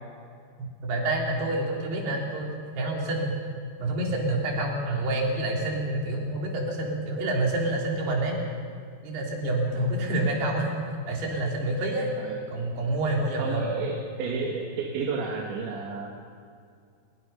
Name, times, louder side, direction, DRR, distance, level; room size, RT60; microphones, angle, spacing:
voice 1, 0.8-2.5 2.8-3.4 3.8-8.4 9.0-10.7 11.1-12.1 12.5-13.6, right 1 dB, 65° right, -1 dB, 5.2 m, -27 dB
voice 2, 13.4-16.1, right 4 dB, 85° right, -1 dB, 4.4 m, -32 dB
25.0 x 22.0 x 5.6 m, 2.3 s
omnidirectional pair, 5.0 m